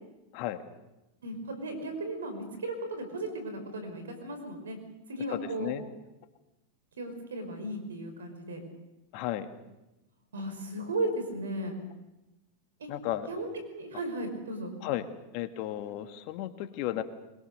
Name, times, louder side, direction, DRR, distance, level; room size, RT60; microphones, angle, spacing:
voice 1, 1.2-4.8 5.1-5.7 7.0-8.6 10.3-11.8 12.8-12.9 13.3-14.7, right 1 dB, 85° right, 7 dB, 5.1 m, -35 dB
voice 2, 5.3-5.8 9.1-9.5 12.9-13.3 14.8-15.1 15.3-17.0, left 13 dB, 55° left, 9 dB, 1.8 m, -34 dB
22.5 x 21.5 x 6.7 m, 0.99 s
hypercardioid pair, 105°, 0 cm